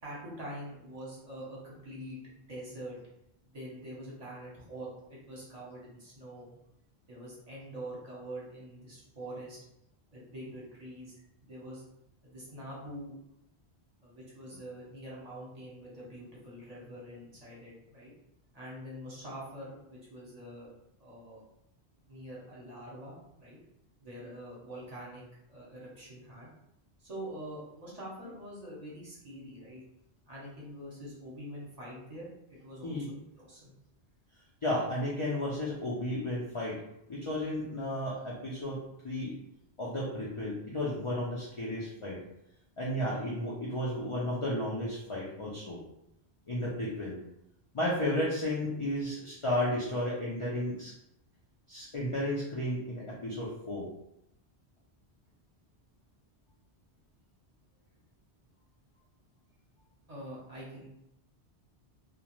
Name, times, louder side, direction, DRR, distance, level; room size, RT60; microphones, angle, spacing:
voice 1, 0.0-3.0 3.5-6.5 7.1-9.6 10.1-11.1 11.4-11.8 12.2-13.2 14.0-18.1 18.5-20.7 21.0-21.4 22.1-23.6 24.0-25.2 25.5-26.5 27.0-29.8 30.3-33.0 33.4-33.8 60.1-60.9, right 1 dB, 40° right, -6 dB, 0.8 m, -45 dB
voice 2, 34.6-36.8 37.1-39.4 39.8-42.2 42.8-45.8 46.5-47.2 47.7-50.9 51.7-53.9, left 1 dB, 50° left, -5 dB, 0.4 m, -33 dB
2.4 x 2.1 x 2.9 m, 0.82 s
omnidirectional pair, 1.1 m